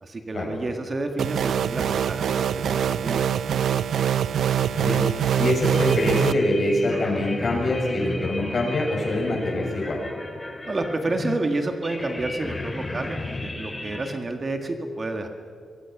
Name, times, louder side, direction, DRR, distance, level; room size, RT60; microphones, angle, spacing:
voice 1, 0.0-3.2 10.7-15.3, right 2 dB, 30° right, 5 dB, 1.7 m, -29 dB
sound 1, 1.2-6.3, right 9 dB, 75° right, 0.5 m, -24 dB
sound 2, 4.5-14.2, left 2 dB, 15° left, 2.4 m, -35 dB
voice 2, 4.7-5.0 5.4-10.0, left 1 dB, 45° left, -1 dB, 7.4 m, -24 dB
25.5 x 23.5 x 6.0 m, 2.3 s
wide cardioid pair, 145°, 0 cm